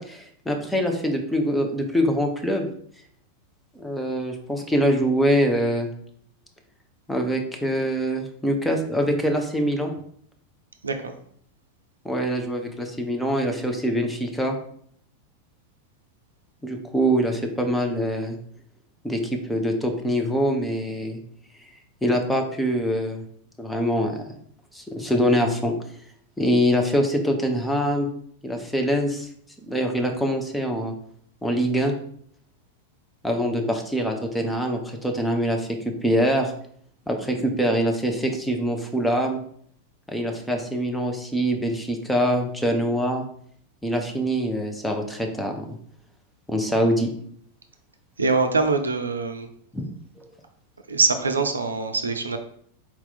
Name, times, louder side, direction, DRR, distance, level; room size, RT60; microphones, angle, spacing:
voice 1, 0.0-2.7 3.8-5.9 7.1-9.9 12.0-14.6 16.6-18.4 19.0-21.2 22.0-23.2 23.6-24.2 24.7-25.7 26.4-28.1 28.4-29.3 29.7-30.9 31.4-31.9 33.2-36.5 37.1-39.4 40.1-43.2 43.8-45.7 46.5-47.1 49.7-49.9, equal, 5° left, 3 dB, 0.7 m, -24 dB
voice 2, 10.8-11.2 48.2-49.5 50.9-52.4, right 4 dB, 75° right, 6 dB, 0.4 m, -23 dB
4.2 x 2.9 x 3.9 m, 0.63 s
figure-of-eight pair, 90°, 0 cm